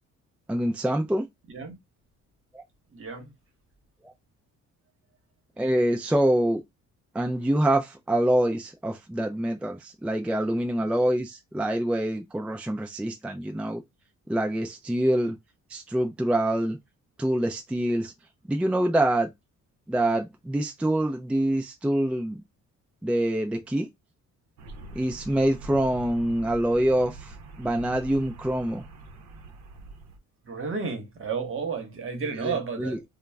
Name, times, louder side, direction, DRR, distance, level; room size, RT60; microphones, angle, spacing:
voice 1, 0.5-1.2 2.5-2.6 4.0-4.1 5.6-6.6 7.1-13.8 14.3-15.4 15.7-16.8 17.2-18.1 18.5-19.3 19.9-22.4 23.0-23.9 24.9-28.8 32.4-32.5 32.8-33.0, right 1 dB, 5° right, 0.3 m, -25 dB
voice 2, 2.9-3.3 30.4-33.0, right 5 dB, 45° right, 1.0 m, -32 dB
sound 1, 24.6-30.2, right 2 dB, 65° right, 0.6 m, -44 dB
2.3 x 2.0 x 3.2 m
cardioid pair, 90°, 30 cm